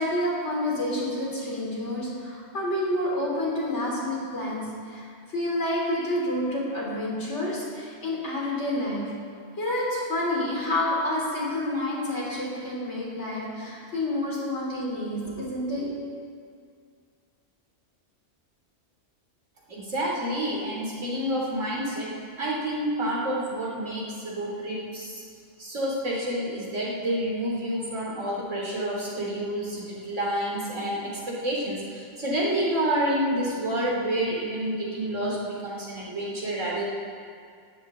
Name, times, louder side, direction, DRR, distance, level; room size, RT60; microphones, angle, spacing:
voice 1, 0.0-9.1 9.6-15.9, left 1 dB, 65° left, -4 dB, 4.0 m, -29 dB
voice 2, 19.7-25.2 25.6-36.9, right 1 dB, 90° right, -4 dB, 3.6 m, -29 dB
19.0 x 12.5 x 3.9 m, 2.2 s
omnidirectional pair, 1.3 m